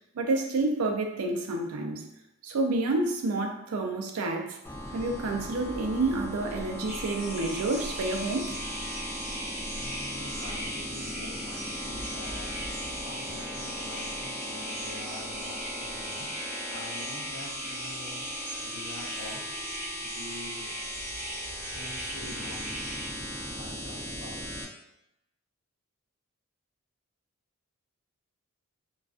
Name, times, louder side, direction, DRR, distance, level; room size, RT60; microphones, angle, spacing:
voice 1, 0.1-2.1 2.4-4.6 4.9-8.5, right 2 dB, 85° right, 3 dB, 0.4 m, -29 dB
sound 1, 4.6-24.6, equal, 10° left, 0.4 m, -37 dB
sound 2, 6.9-23.1, equal, 10° right, 0.8 m, -40 dB
voice 2, 9.8-12.5 13.0-16.3 16.7-18.3 18.6-19.5 20.0-20.7 21.7-22.8 23.5-24.6, left 1 dB, 85° left, -3 dB, 0.7 m, -45 dB
2.3 x 2.3 x 2.3 m, 0.85 s
head